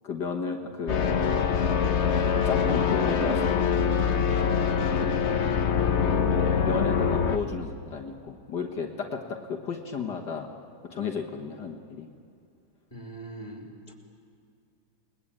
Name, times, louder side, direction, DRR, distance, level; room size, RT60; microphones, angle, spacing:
voice 1, 0.0-1.1 2.4-3.6 6.1-10.5 10.9-12.1, left 5 dB, 70° left, 1 dB, 2.1 m, -33 dB
sound 1, 0.9-7.4, left 6 dB, 45° left, 1.2 m, -24 dB
voice 2, 12.9-13.9, right 2 dB, 20° left, 2 dB, 3.5 m, -42 dB
29.5 x 21.0 x 8.9 m, 2.5 s
omnidirectional pair, 1.9 m